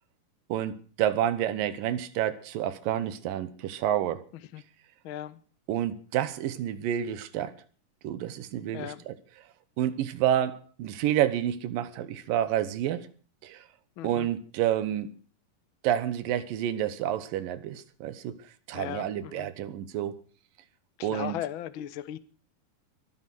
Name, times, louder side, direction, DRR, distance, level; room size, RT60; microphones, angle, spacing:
voice 1, 0.5-4.2 5.7-7.5 8.0-9.1 9.8-13.1 13.4-13.7 14.0-15.1 15.8-18.4 18.7-20.2 21.0-21.4, right 11 dB, 85° right, 2.9 m, -29 dB
voice 2, 5.0-5.4 8.7-9.0 14.0-14.3 18.7-19.5 21.0-22.2, left 12 dB, 90° left, 1.1 m, -37 dB
22.5 x 9.8 x 6.1 m
omnidirectional pair, 3.9 m